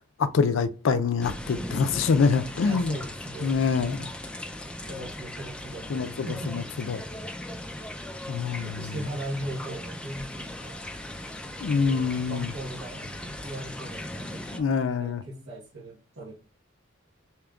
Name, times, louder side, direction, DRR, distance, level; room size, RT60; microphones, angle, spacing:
voice 1, 0.2-3.0 3.4-4.1 5.9-7.0 8.3-8.9 11.6-12.5 14.5-15.2, left 5 dB, 70° left, 0.4 m, -25 dB
sound 1, 1.2-14.6, left 1 dB, 5° left, 0.3 m, -38 dB
voice 2, 2.6-4.5 4.8-6.7 8.6-10.8 11.6-16.3, right 1 dB, 70° right, 1.0 m, -39 dB
4.9 x 2.9 x 2.3 m
head